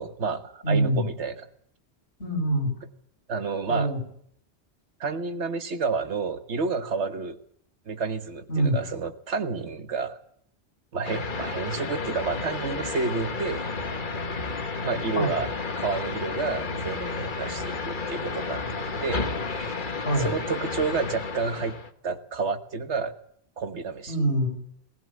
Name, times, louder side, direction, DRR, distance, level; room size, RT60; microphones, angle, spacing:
voice 1, 0.0-1.5 3.3-3.9 5.0-7.4 7.9-10.2 10.9-13.7 14.8-19.7 20.2-21.8 22.0-23.1 23.6-24.2, right 4 dB, 90° right, 10 dB, 1.6 m, -30 dB
voice 2, 0.6-1.1 2.2-2.7 3.7-4.0 8.5-8.8 15.1-15.4 20.0-20.4 24.1-24.5, right 1 dB, 85° left, 0 dB, 6.1 m, -24 dB
sound 1, 11.0-21.9, left 4 dB, 50° left, 1.5 m, -32 dB
19.5 x 16.5 x 8.5 m, 0.66 s
omnidirectional pair, 1.1 m